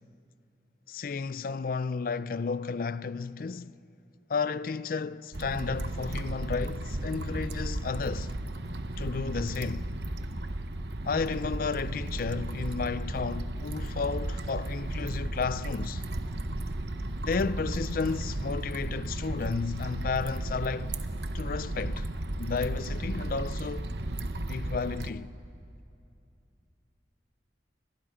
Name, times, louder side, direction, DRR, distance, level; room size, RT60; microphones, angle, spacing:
voice 1, 0.9-3.8 4.3-8.3 9.0-9.9 11.0-16.0 17.2-20.9 21.3-22.1 22.4-23.9 24.5-25.3, left 5 dB, 50° left, 0.4 m, -32 dB
sound 1, 5.3-25.1, right 1 dB, 70° right, 0.9 m, -34 dB
29.5 x 23.5 x 5.0 m
head